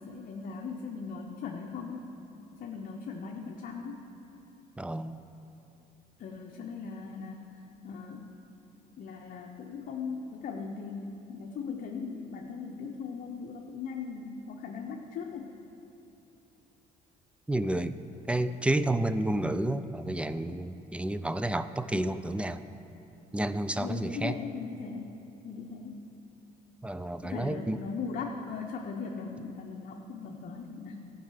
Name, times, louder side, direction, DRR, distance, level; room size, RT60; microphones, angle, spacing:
voice 1, 0.0-2.1 2.6-4.1 6.2-8.3 9.0-15.5 23.7-25.1 25.4-26.0 27.2-31.1, left 5 dB, 55° left, 1 dB, 0.9 m, -39 dB
voice 2, 4.8-5.2 17.5-18.0 18.3-22.6 23.3-24.3 26.8-27.8, right 1 dB, 5° right, 12 dB, 0.4 m, -30 dB
14.0 x 5.5 x 7.6 m, 2.9 s
cardioid pair, 110°, 17 cm